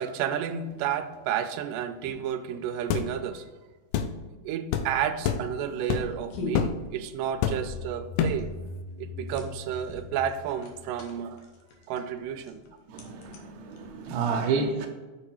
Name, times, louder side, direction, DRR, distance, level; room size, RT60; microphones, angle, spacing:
voice 1, 0.0-3.5 4.4-8.5 9.0-11.4 11.9-12.6 14.1-14.2, right 9 dB, 90° right, 2.2 m, -31 dB
sound 1, 2.9-3.1 3.9-4.1 4.7-4.9 5.2-5.5 5.9-6.2 6.5-6.8 7.4-7.8 8.2-8.5, left 8 dB, 90° left, 2.3 m, -26 dB
sound 2, 5.0-14.3, left 2 dB, 70° left, 2.3 m, -44 dB
sound 3, 7.3-11.9, left 2 dB, 45° left, 3.1 m, -42 dB
voice 2, 12.9-14.9, right 5 dB, 70° right, 1.9 m, -29 dB
6.6 x 4.8 x 4.6 m
omnidirectional pair, 3.7 m